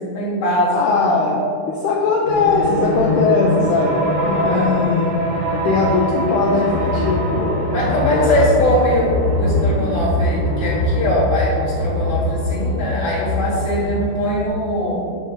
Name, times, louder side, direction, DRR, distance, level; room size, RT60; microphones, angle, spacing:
voice 1, 0.0-1.0 4.3-4.9 7.7-15.1, equal, 70° left, -8 dB, 1.2 m, -21 dB
voice 2, 0.7-5.2 5.6-8.5, left 4 dB, 90° left, -2 dB, 1.7 m, -20 dB
sound 1, 2.3-14.5, left 1 dB, 80° right, 3.6 m, -22 dB
7.5 x 3.8 x 5.3 m, 2.5 s
omnidirectional pair, 4.3 m